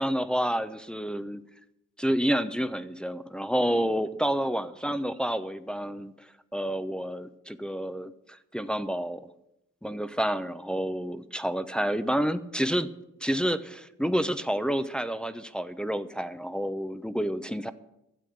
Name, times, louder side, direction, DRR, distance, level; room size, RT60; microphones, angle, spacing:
voice 1, 0.0-1.4 2.0-6.1 6.5-9.2 9.8-12.9 13.2-17.7, equal, 5° left, 10 dB, 0.9 m, -29 dB
13.0 x 8.3 x 6.6 m, 0.85 s
supercardioid pair, 50°, 31 cm